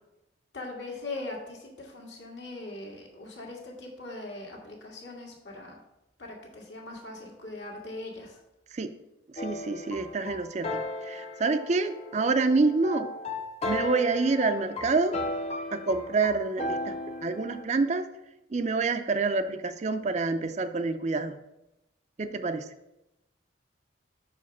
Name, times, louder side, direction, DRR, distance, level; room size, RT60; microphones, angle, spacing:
voice 1, 0.5-5.8 6.2-8.4, left 2 dB, 70° left, -1 dB, 1.8 m, -40 dB
voice 2, 9.3-13.1 13.7-15.2 15.7-17.0 17.2-18.1 18.5-21.4 22.2-22.7, right 3 dB, 35° right, 10 dB, 0.4 m, -27 dB
sound 1, 9.4-17.6, left 2 dB, 35° left, 0.6 m, -35 dB
5.1 x 4.8 x 5.9 m, 0.92 s
head